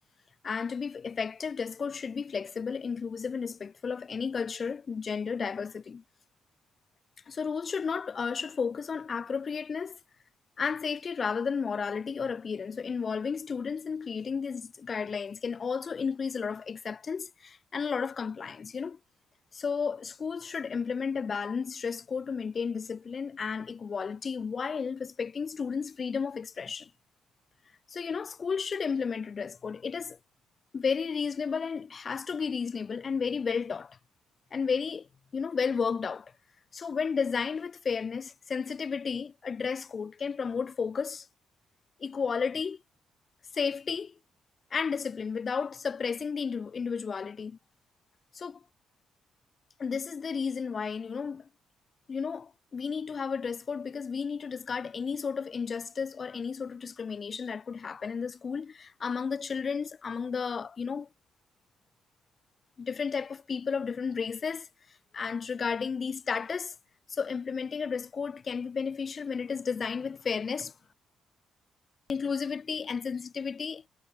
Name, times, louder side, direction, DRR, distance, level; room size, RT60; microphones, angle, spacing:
voice 1, 0.4-6.0 7.3-10.0 10.6-19.0 19.5-26.9 27.9-30.2 30.7-34.0 34.5-35.1 35.3-36.3 36.7-41.3 42.0-42.8 43.5-44.1 44.7-47.6 48.3-48.6 49.8-51.5 52.1-61.1 62.8-64.7 65.1-66.7 67.1-70.7 72.1-73.9, left 5 dB, 40° left, 3.8 m, -33 dB
cardioid pair, 90°, 0 cm